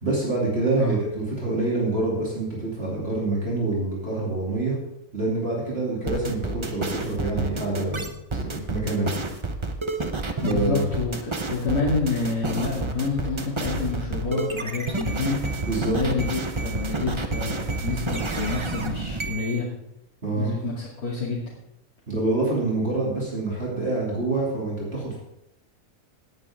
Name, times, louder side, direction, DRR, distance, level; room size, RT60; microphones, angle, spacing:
voice 1, 0.0-4.8 5.1-8.0 8.3-9.1 10.4-10.8 15.6-16.0 20.2-20.5 22.1-25.2, right 2 dB, 40° right, -5 dB, 3.2 m, -26 dB
sound 1, 6.1-19.6, right 3 dB, 25° right, 0.8 m, -29 dB
voice 2, 10.4-15.4 15.9-19.7 20.3-21.4, left 4 dB, 75° left, -7 dB, 3.2 m, -28 dB
17.5 x 10.5 x 3.7 m, 0.87 s
omnidirectional pair, 1.6 m